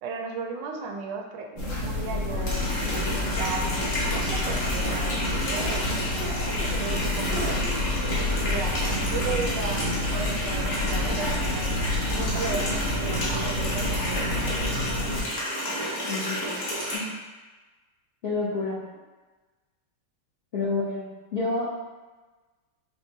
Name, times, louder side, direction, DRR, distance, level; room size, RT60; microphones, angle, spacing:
voice 1, 0.0-7.6 8.4-15.1 18.7-18.8, right 4 dB, 80° right, 2 dB, 1.2 m, -36 dB
sound 1, 1.6-15.2, left 2 dB, 90° left, 1.8 m, -29 dB
Water tap faucet, 2.5-17.0, equal, 50° left, 1.2 m, -31 dB
voice 2, 16.0-16.5 16.9-17.1 18.2-18.9 20.5-21.7, left 3 dB, 65° left, -8 dB, 0.6 m, -29 dB
5.9 x 2.4 x 2.7 m, 1.2 s
omnidirectional pair, 2.0 m